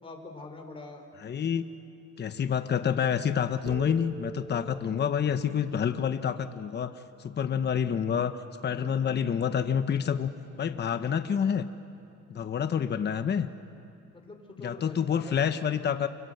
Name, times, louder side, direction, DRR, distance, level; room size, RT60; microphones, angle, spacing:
voice 1, 0.0-1.0 14.1-15.3, left 2 dB, 20° left, 2 dB, 4.2 m, -44 dB
voice 2, 1.2-1.6 2.2-6.9 7.2-8.4 8.6-10.3 10.6-11.7 12.3-13.5 14.6-16.1, left 8 dB, 35° left, 9 dB, 1.0 m, -28 dB
sound 1, 3.7-7.2, right 4 dB, 45° right, 2.7 m, -45 dB
29.0 x 25.5 x 8.0 m, 2.5 s
cardioid pair, 115°, 29 cm